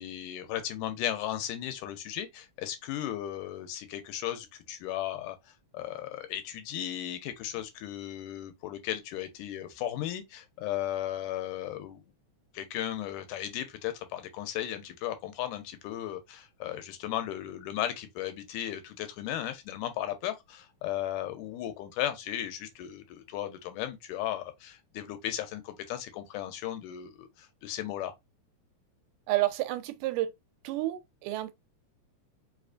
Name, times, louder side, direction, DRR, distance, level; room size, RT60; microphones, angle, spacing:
voice 1, 0.0-5.4 5.7-12.0 12.5-28.1, left 12 dB, 85° left, 2.2 m, -36 dB
voice 2, 29.3-30.3 30.6-31.5, right 15 dB, 85° right, 2.1 m, -30 dB
4.8 x 2.3 x 2.5 m
omnidirectional pair, 3.6 m